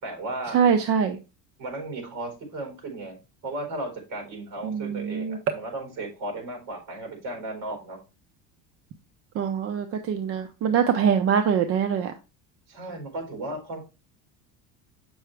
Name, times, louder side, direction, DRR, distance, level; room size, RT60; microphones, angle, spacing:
voice 1, 0.0-0.6 1.6-3.2 3.4-8.0 12.7-13.8, right 2 dB, 55° right, 3 dB, 4.3 m, -35 dB
voice 2, 0.5-1.2 4.6-5.4 9.4-12.1, right 7 dB, 40° right, 8 dB, 0.6 m, -23 dB
7.6 x 6.2 x 3.3 m, 0.29 s
cardioid pair, 165°, 37 cm